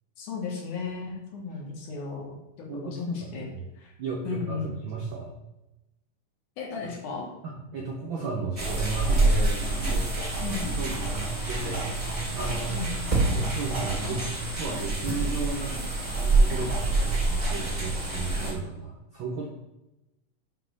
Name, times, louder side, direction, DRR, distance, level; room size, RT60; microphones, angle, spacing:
voice 1, 0.2-3.5 3.7-3.9 4.2-4.7 6.6-7.3 10.4-10.8 12.7-13.4, left 5 dB, 75° left, 0 dB, 2.9 m, -35 dB
voice 2, 4.0-5.3 7.7-12.9 13.3-14.3 14.5-19.5, right 4 dB, 85° right, -1 dB, 1.0 m, -34 dB
sound 1, 8.6-18.5, right 2 dB, 35° right, 0.5 m, -26 dB
6.5 x 5.2 x 5.2 m, 0.96 s
omnidirectional pair, 3.6 m